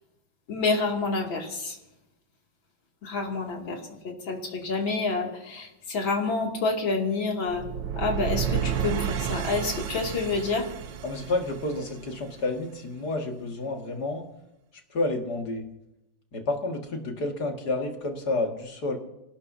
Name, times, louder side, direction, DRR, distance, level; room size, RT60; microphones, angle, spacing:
voice 1, 0.5-1.8 3.0-3.8 4.3-7.6 8.0-10.7, left 3 dB, 80° left, 0 dB, 3.4 m, -28 dB
sound 1, 7.5-12.5, right 8 dB, 75° right, 1.5 m, -31 dB
voice 2, 11.0-14.3 14.9-15.7 16.3-19.0, left 2 dB, 55° left, 2 dB, 2.6 m, -30 dB
27.5 x 17.5 x 2.8 m, 0.90 s
omnidirectional pair, 2.1 m